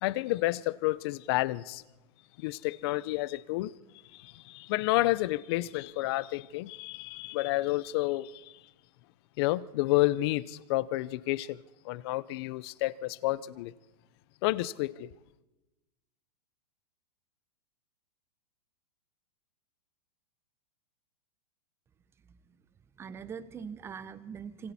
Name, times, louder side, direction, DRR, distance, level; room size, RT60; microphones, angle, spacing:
voice 1, 0.0-1.8 2.4-3.7 4.1-8.6 9.4-11.6 11.8-13.7 14.4-15.1, left 18 dB, 40° left, 0.7 m, -30 dB
voice 2, 23.0-24.7, right 6 dB, 10° right, 0.7 m, -42 dB
27.5 x 24.5 x 4.2 m
supercardioid pair, 155°, 20 cm